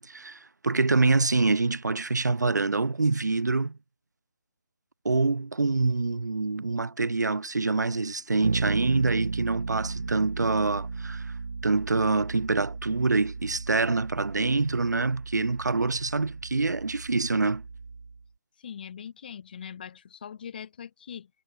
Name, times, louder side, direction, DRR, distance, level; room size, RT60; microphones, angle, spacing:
voice 1, 0.0-3.8 5.0-11.3 11.6-17.6, right 3 dB, 90° right, 3.1 m, -26 dB
Bass guitar, 8.4-18.2, right 4 dB, 70° right, 2.4 m, -35 dB
voice 2, 18.6-21.3, left 8 dB, 35° left, 7.5 m, -41 dB
hypercardioid pair, 170°, 9 cm